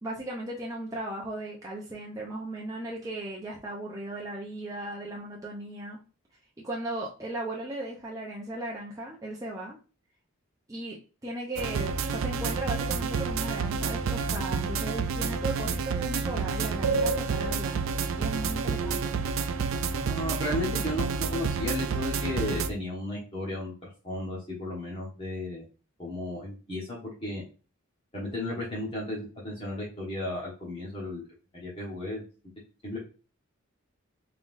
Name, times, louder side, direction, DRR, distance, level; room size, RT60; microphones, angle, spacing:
voice 1, 0.0-6.0 6.6-9.8 10.7-19.2, right 1 dB, 15° right, -3 dB, 0.6 m, -37 dB
sound 1, 11.6-22.7, right 5 dB, 70° right, 0.4 m, -29 dB
voice 2, 20.0-23.7 24.0-25.6 26.0-27.4 28.1-31.2 31.5-32.2 32.8-33.0, left 1 dB, 25° left, -5 dB, 1.1 m, -34 dB
3.7 x 3.5 x 2.5 m, 0.35 s
head